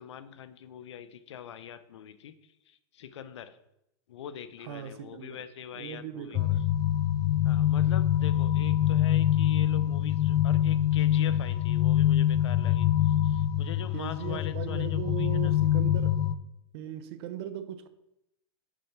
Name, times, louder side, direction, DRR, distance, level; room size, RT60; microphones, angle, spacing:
voice 1, 0.0-3.6 4.1-6.4 7.4-15.5, left 9 dB, 85° left, 0.7 m, -43 dB
voice 2, 4.6-5.4 5.7-6.6 13.9-16.2 16.7-17.9, right 9 dB, 60° right, 0.9 m, -38 dB
sound 1, 6.3-16.3, left 11 dB, 35° left, 0.4 m, -25 dB
6.3 x 5.4 x 5.9 m
hypercardioid pair, 130°, 15 cm